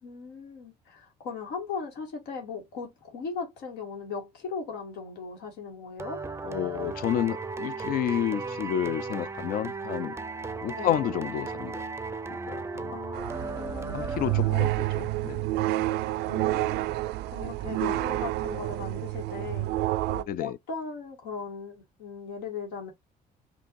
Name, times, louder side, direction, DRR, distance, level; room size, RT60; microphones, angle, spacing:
voice 1, 0.0-6.2 10.8-11.1 12.9-14.8 16.3-16.9 17.3-22.9, left 5 dB, 90° left, 1.8 m, -38 dB
sound 1, 6.0-14.9, right 4 dB, 15° right, 0.5 m, -36 dB
voice 2, 6.4-10.2 10.6-11.8 12.3-12.9 13.9-15.5 20.3-20.6, left 11 dB, 60° left, 0.4 m, -30 dB
sound 2, 13.1-20.2, right 17 dB, 85° right, 0.4 m, -29 dB
5.4 x 2.6 x 2.6 m
cardioid pair, 110°, 17 cm